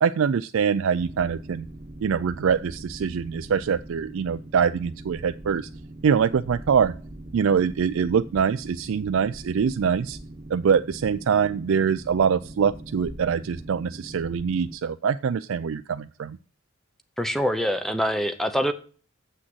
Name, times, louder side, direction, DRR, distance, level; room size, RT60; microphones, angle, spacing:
voice 1, 0.0-1.7 2.0-5.7 6.0-6.9 7.3-10.2 10.5-16.4, right 6 dB, 70° right, 11 dB, 0.4 m, -24 dB
Boat Water vehicle, 1.0-14.8, right 1 dB, 30° right, 1.0 m, -42 dB
voice 2, 17.2-18.7, equal, ahead, 9 dB, 0.7 m, -24 dB
7.5 x 6.2 x 7.8 m, 0.41 s
head